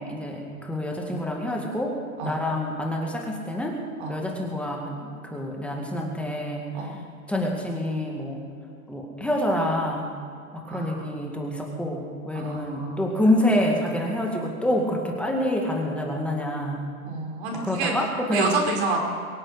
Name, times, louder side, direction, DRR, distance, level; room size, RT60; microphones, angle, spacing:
voice 1, 0.1-3.8 4.1-5.0 5.2-6.7 7.3-8.4 8.9-10.1 10.5-16.8 17.5-18.5, left 1 dB, 5° left, 0 dB, 2.1 m, -27 dB
voice 2, 10.7-11.2 12.3-13.1 17.0-17.9 18.3-19.0, right 3 dB, 45° right, 1 dB, 4.6 m, -29 dB
23.5 x 8.8 x 6.6 m, 2.4 s
hypercardioid pair, 130°, 44 cm